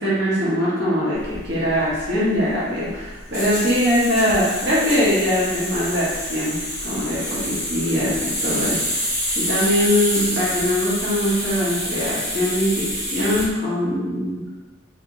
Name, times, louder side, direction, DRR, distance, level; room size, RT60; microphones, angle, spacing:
voice 1, 0.0-6.6 6.8-14.4, equal, 55° right, -8 dB, 1.1 m, -22 dB
sound 1, 1.1-13.5, equal, 10° right, 1.3 m, -27 dB
3.1 x 2.6 x 2.9 m, 1.2 s
head